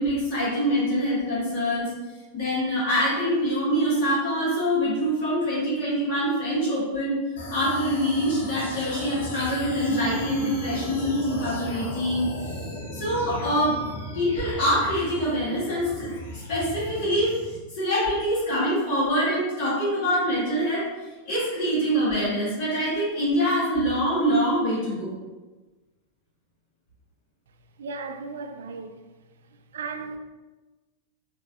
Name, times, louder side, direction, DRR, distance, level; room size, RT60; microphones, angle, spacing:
voice 1, 0.0-1.9 2.3-12.3 12.9-13.8 14.1-17.4 17.7-20.9 21.2-25.1, equal, 45° left, 1.5 m, -25 dB
sound 1, 7.4-17.6, left 1 dB, 65° left, 0.7 m, -36 dB
voice 2, 27.8-29.0 29.7-30.2, right 4 dB, 60° right, 0.3 m, -35 dB
4.0 x 2.6 x 2.3 m
figure-of-eight pair, 90°, 0 cm